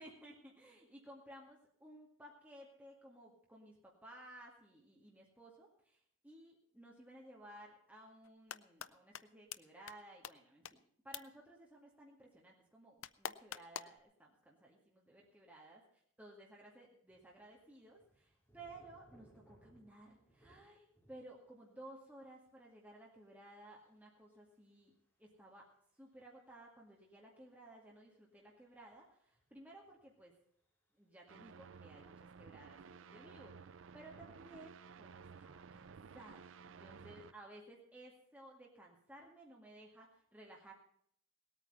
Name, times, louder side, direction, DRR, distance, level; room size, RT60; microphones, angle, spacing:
voice 1, 0.0-15.8 16.2-25.7 26.0-30.4 31.0-40.7, right 1 dB, 10° right, -2 dB, 2.1 m, -57 dB
sound 1, 8.2-8.9 9.1-9.2 9.5-9.6 9.9-10.0 10.2-10.3 10.7-10.8 11.1-11.2 13.0-14.0, left 9 dB, 85° left, 0.6 m, -43 dB
sound 2, 17.1-21.5 21.8-25.9 26.6-26.7 27.8-27.9 28.5-29.0 29.3-30.3, right 1 dB, 10° left, 4.0 m, -68 dB
sound 3, 31.3-37.3, right 6 dB, 75° right, 0.5 m, -55 dB
18.5 x 9.0 x 5.5 m, 0.65 s
head